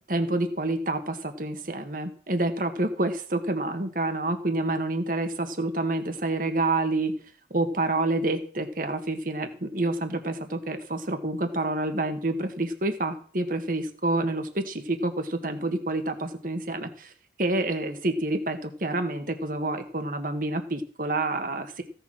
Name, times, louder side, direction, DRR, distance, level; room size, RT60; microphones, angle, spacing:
voice 1, 0.1-7.1 7.5-17.1 17.4-21.8, right 2 dB, 50° right, 7 dB, 1.7 m, -28 dB
16.0 x 7.1 x 6.1 m, 0.43 s
head